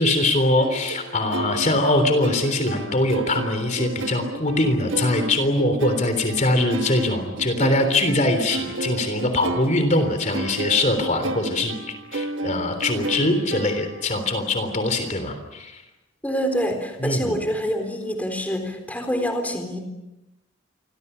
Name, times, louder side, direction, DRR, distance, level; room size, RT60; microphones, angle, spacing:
voice 1, 0.0-11.7 12.1-15.8 17.0-17.4, left 1 dB, 35° left, 7 dB, 3.5 m, -22 dB
sound 1, 0.6-14.2, right 2 dB, 65° right, 1.4 m, -32 dB
voice 2, 16.2-19.8, equal, 10° left, 5 dB, 4.0 m, -26 dB
28.5 x 24.0 x 7.0 m, 0.98 s
head